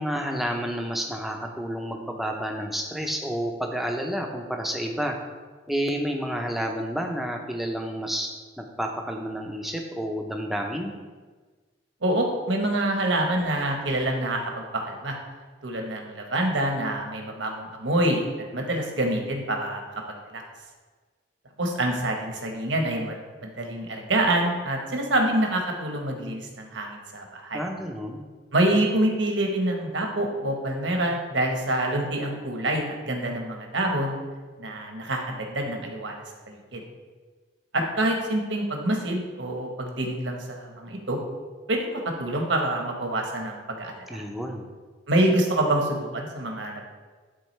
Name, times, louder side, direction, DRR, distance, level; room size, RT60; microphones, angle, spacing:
voice 1, 0.0-5.2 5.7-8.3 8.6-10.9 27.5-28.2 44.1-44.6, equal, ahead, 2 dB, 0.6 m, -30 dB
voice 2, 12.0-14.4 14.9-15.2 15.6-18.3 18.5-19.8 20.3-20.4 21.6-27.6 28.5-34.2 34.6-36.2 36.5-36.8 37.7-41.2 41.7-44.2 45.1-46.9, right 1 dB, 75° right, 2 dB, 1.1 m, -26 dB
11.0 x 3.8 x 3.2 m, 1.4 s
head